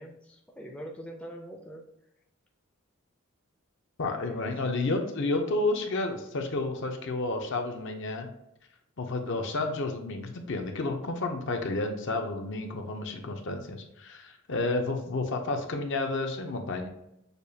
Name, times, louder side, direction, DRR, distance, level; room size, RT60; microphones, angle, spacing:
voice 1, 0.0-1.9 4.1-4.5 14.5-14.7, equal, 5° left, 0 dB, 0.4 m, -44 dB
voice 2, 4.0-8.3 9.0-16.9, left 2 dB, 55° left, 4 dB, 0.6 m, -31 dB
6.7 x 2.3 x 2.7 m, 0.83 s
head